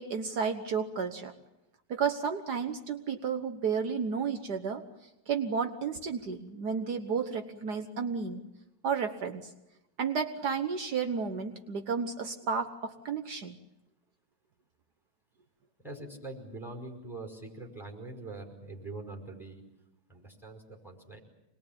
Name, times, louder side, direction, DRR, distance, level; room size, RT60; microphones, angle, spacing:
voice 1, 0.0-1.3 1.9-4.8 5.3-8.4 8.8-9.5 10.0-13.5, right 6 dB, 65° right, 7 dB, 1.7 m, -32 dB
voice 2, 15.8-19.6 20.1-21.2, right 2 dB, ahead, 2 dB, 5.0 m, -43 dB
25.5 x 20.5 x 8.8 m, 0.92 s
omnidirectional pair, 1.9 m